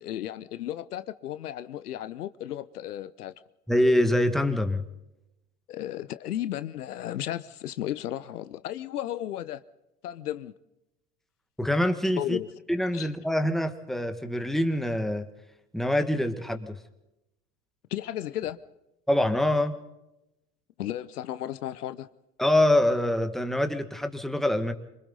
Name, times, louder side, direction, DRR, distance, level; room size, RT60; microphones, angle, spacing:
voice 1, 0.0-3.3 5.7-9.6 10.0-10.5 12.2-12.5 12.9-13.1 17.9-18.6 20.8-22.1, left 12 dB, 75° left, 1.0 m, -34 dB
voice 2, 3.7-4.8 11.6-12.4 12.7-15.3 15.7-16.8 19.1-19.8 22.4-24.7, left 1 dB, ahead, 2.0 m, -25 dB
26.5 x 25.0 x 4.0 m
hypercardioid pair, 80°, 46 cm